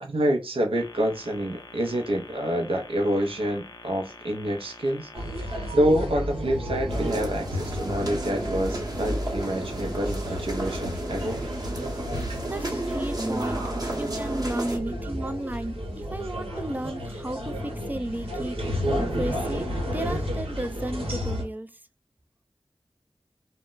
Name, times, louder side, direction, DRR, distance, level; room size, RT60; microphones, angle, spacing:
voice 1, 0.0-5.1 5.7-11.4 12.7-12.8, equal, 70° right, 0.5 m, -27 dB
sound 1, 0.8-5.7, left 3 dB, 45° left, 0.5 m, -46 dB
sound 2, 5.1-21.4, equal, 90° right, 1.0 m, -32 dB
sound 3, 6.9-14.8, right 2 dB, 40° right, 0.8 m, -33 dB
voice 2, 12.2-13.7 14.0-21.8, right 1 dB, 20° right, 0.3 m, -34 dB
2.1 x 2.0 x 3.7 m
wide cardioid pair, 45°, 10 cm